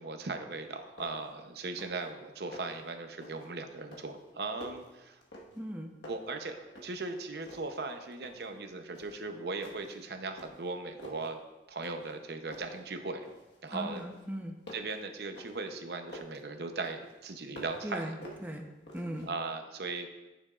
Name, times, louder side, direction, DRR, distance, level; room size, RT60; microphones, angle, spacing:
voice 1, 0.0-5.2 6.1-11.4 11.7-13.3 13.6-14.1 14.7-18.2 19.3-20.1, right 3 dB, 60° right, 6 dB, 0.8 m, -38 dB
sound 1, 0.5-0.6 1.0-1.4 1.7-2.1 2.4-2.9 3.2-3.5 3.9-5.7 6.0-7.1 7.4-8.5 8.9-9.2 9.6-10.0 10.4-11.3 11.8-12.2 12.5-13.6 13.9-16.4 16.8-17.9 18.2-19.3, left 1 dB, 75° left, 1.5 m, -50 dB
voice 2, 5.5-5.9 13.7-14.5 17.8-18.1 18.4-18.7 18.9-19.3, right 1 dB, 10° right, 2 dB, 0.8 m, -38 dB
12.5 x 6.9 x 2.5 m, 1.1 s
head